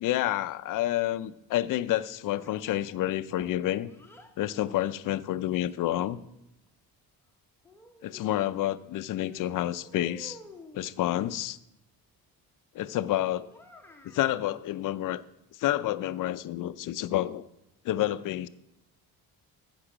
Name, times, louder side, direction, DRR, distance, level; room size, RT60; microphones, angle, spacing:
voice 1, 0.0-3.9 4.4-6.2 8.0-10.4 10.7-11.6 12.7-13.5 14.0-15.2 15.5-17.5 17.8-18.5, left 13 dB, 55° left, 14 dB, 0.5 m, -29 dB
Child speech kid speaking, 2.4-4.4 5.3-6.5 7.6-8.8 9.2-10.9 13.4-14.3, left 2 dB, 5° left, 0.8 m, -52 dB
14.5 x 5.5 x 5.0 m, 0.85 s
cardioid pair, 125°, 39 cm